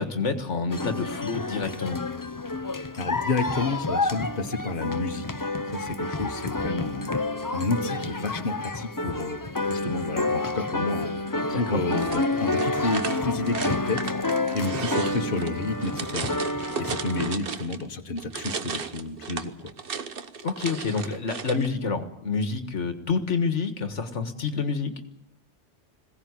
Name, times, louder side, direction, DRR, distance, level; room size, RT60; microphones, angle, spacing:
voice 1, 0.0-2.0 11.5-11.8 20.4-24.9, left 4 dB, 80° left, 9 dB, 1.9 m, -28 dB
sound 1, 0.7-17.4, left 2 dB, 20° left, 0.8 m, -29 dB
voice 2, 3.0-5.3 5.7-7.1 7.5-9.4 9.7-11.1 11.5-19.7, left 3 dB, 45° left, 5 dB, 1.7 m, -30 dB
sound 2, 11.9-17.9 18.2-21.7, right 6 dB, 50° right, 1.2 m, -35 dB
21.5 x 17.0 x 9.7 m, 0.76 s
omnidirectional pair, 1.2 m